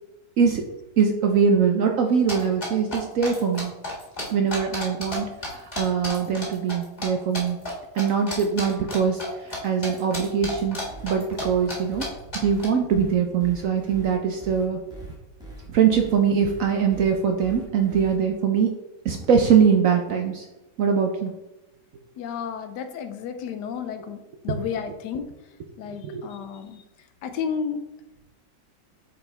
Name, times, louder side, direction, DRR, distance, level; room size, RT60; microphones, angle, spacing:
voice 1, 1.0-3.7 4.3-7.6 7.9-10.8 11.0-12.0 12.4-14.8 15.7-18.7 19.0-20.4 20.8-21.3 26.1-26.2, right 6 dB, 65° right, 4 dB, 0.8 m, -22 dB
sound 1, 2.3-5.2 5.4-7.1 7.3-7.7 8.0-9.6 9.8-11.4 11.7-11.8 12.0-12.1 12.3-12.7, left 1 dB, 25° left, 1.7 m, -32 dB
sound 2, 10.4-18.2, right 1 dB, 5° right, 1.4 m, -42 dB
voice 2, 22.2-24.2 24.4-25.3 25.8-26.8 27.2-27.8, left 7 dB, 75° left, 8 dB, 1.2 m, -32 dB
7.8 x 4.6 x 3.3 m, 1.0 s
omnidirectional pair, 1.9 m